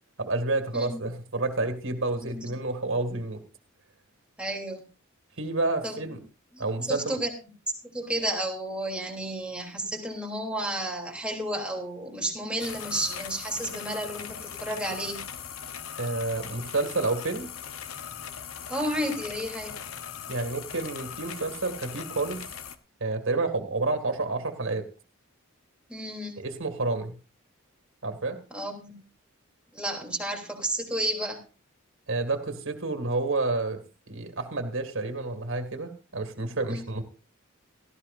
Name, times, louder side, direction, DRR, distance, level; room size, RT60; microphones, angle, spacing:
voice 1, 0.2-3.4 5.4-6.2 6.6-7.2 16.0-17.5 20.3-22.4 23.0-24.8 26.4-27.2 28.0-28.4 32.1-33.8 34.1-37.0, right 3 dB, 65° right, 7 dB, 2.1 m, -29 dB
voice 2, 4.4-4.8 5.8-6.2 6.5-7.3 7.8-15.2 18.7-19.7 25.9-26.4 28.5-29.0 29.7-31.4 36.7-36.8, right 1 dB, 5° right, 0 dB, 3.1 m, -32 dB
sound 1, 12.6-22.8, left 8 dB, 80° left, 1.0 m, -39 dB
17.5 x 14.0 x 2.6 m, 0.33 s
head